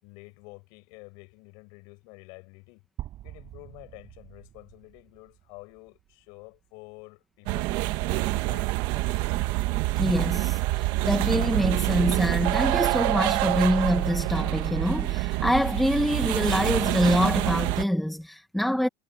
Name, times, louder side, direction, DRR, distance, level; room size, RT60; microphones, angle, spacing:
voice 1, 0.0-2.8 3.2-7.8 8.1-8.7, left 31 dB, 60° left, 7.7 m, -49 dB
sound 1, 3.0-6.9, right 14 dB, 40° right, 6.9 m, -45 dB
sound 2, 7.5-17.8, right 19 dB, 55° right, 1.3 m, -26 dB
voice 2, 10.0-18.9, equal, ahead, 1.6 m, -25 dB
cardioid pair, 155°, 9 cm